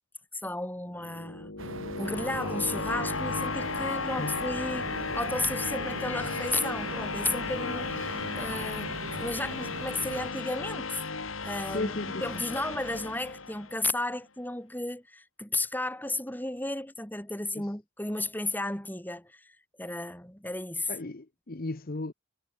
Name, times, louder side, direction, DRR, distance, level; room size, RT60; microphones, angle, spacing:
voice 1, 0.3-1.7 2.0-11.0 11.4-19.5 19.8-20.9, left 2 dB, 10° left, 5.8 m, -34 dB
sound 1, 0.9-13.9, left 4 dB, 75° left, 3.1 m, -35 dB
sound 2, 1.6-10.3, right 2 dB, 85° right, 7.7 m, -40 dB
voice 2, 11.7-12.2 17.6-17.7 20.9-22.1, left 2 dB, 45° left, 1.0 m, -35 dB
head